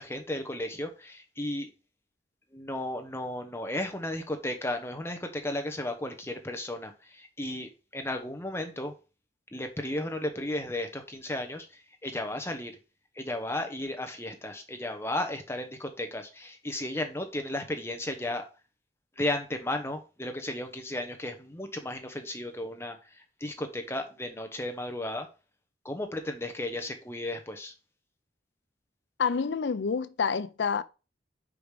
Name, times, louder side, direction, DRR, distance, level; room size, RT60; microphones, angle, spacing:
voice 1, 0.0-1.7 2.5-8.9 9.5-12.7 13.2-18.5 19.2-23.0 23.4-25.3 25.8-27.7, left 1 dB, 15° left, 0.9 m, -34 dB
voice 2, 29.2-30.8, left 6 dB, 75° left, 0.5 m, -28 dB
5.0 x 4.9 x 5.1 m
head